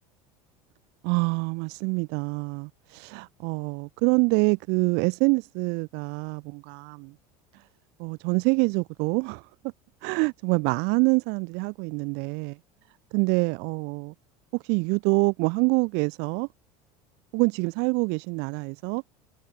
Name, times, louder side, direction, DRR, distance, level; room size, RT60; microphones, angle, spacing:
voice 1, 1.0-7.0 8.0-9.5 10.0-12.6 13.1-14.1 14.5-16.5 17.3-19.0, right 31 dB, 60° right, 3.3 m, -26 dB
hypercardioid pair, 75°, 19 cm